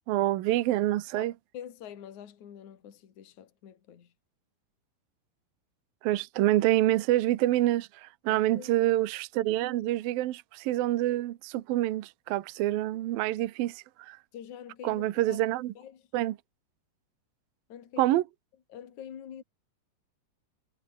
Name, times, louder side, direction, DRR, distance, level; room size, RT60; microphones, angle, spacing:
voice 1, 0.1-1.3 6.0-14.2 14.8-15.7 16.1-16.4 18.0-18.2, right 15 dB, 70° right, 2.7 m, -27 dB
voice 2, 1.1-4.1 8.3-8.8 14.3-15.4 15.8-16.0 17.7-18.2 18.7-19.4, left 9 dB, 50° left, 3.6 m, -46 dB
omnidirectional pair, 4.5 m